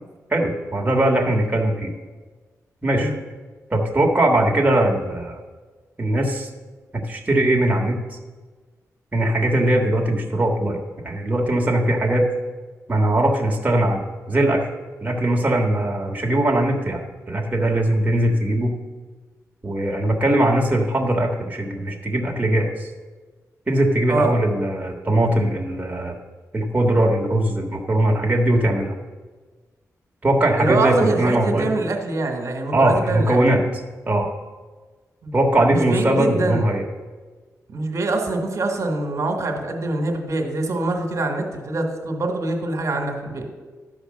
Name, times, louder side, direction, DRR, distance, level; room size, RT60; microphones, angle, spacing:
voice 1, 0.3-1.9 2.8-3.1 3.7-5.4 6.0-6.5 6.9-8.0 9.1-10.8 11.0-12.3 12.9-14.0 14.3-14.7 15.0-17.0 17.3-18.7 19.6-22.9 23.7-26.1 26.5-28.9 30.2-31.7 32.7-33.6 34.0-34.3 35.3-36.8, right 1 dB, 25° right, 0 dB, 1.5 m, -20 dB
voice 2, 30.6-33.4 35.2-35.3 35.7-36.6 37.7-43.5, right 2 dB, 60° right, 2 dB, 1.5 m, -24 dB
12.5 x 4.9 x 6.5 m, 1.4 s
cardioid pair, 90°, 6 cm